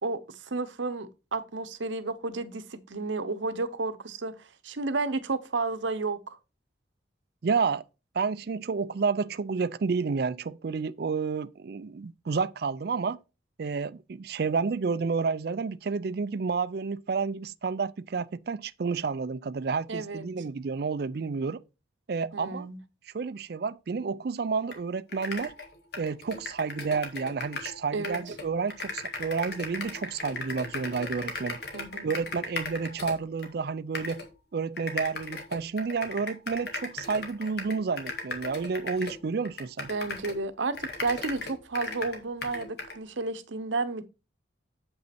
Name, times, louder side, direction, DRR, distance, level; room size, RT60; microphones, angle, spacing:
voice 1, 0.0-4.3 4.6-6.4 19.9-20.3 22.3-22.8 27.9-28.2 31.7-32.1 39.9-44.0, right 3 dB, 75° right, 0.9 m, -32 dB
voice 2, 7.4-7.8 8.1-13.2 13.6-21.6 22.1-22.7 23.1-25.5 26.0-31.6 32.0-34.2 34.5-39.9, right 5 dB, 55° right, 0.4 m, -30 dB
sound 1, 24.7-24.8 25.1-27.8 28.0-33.5 33.9-34.3 34.8-40.4 40.7-43.0, left 3 dB, 55° left, 1.9 m, -37 dB
7.9 x 5.6 x 4.3 m
head